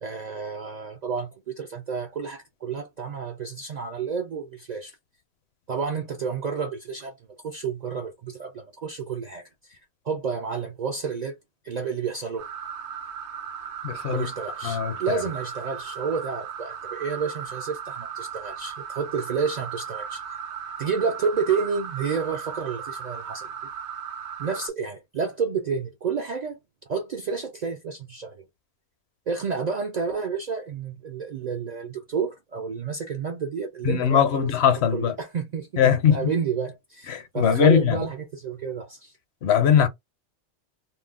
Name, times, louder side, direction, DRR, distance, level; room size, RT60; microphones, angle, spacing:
voice 1, 0.0-5.0 5.7-11.4 11.6-12.5 14.1-20.4 20.8-23.5 24.4-26.6 26.9-28.5 29.3-34.5 34.9-39.1, right 5 dB, 60° right, 0.4 m, -30 dB
sound 1, 12.4-24.7, right 8 dB, 80° right, 0.9 m, -36 dB
voice 2, 13.8-14.3 14.6-14.9 33.9-35.1 35.8-36.2 37.1-38.0 39.4-39.9, left 8 dB, 70° left, 0.9 m, -20 dB
2.5 x 2.0 x 3.4 m
omnidirectional pair, 1.2 m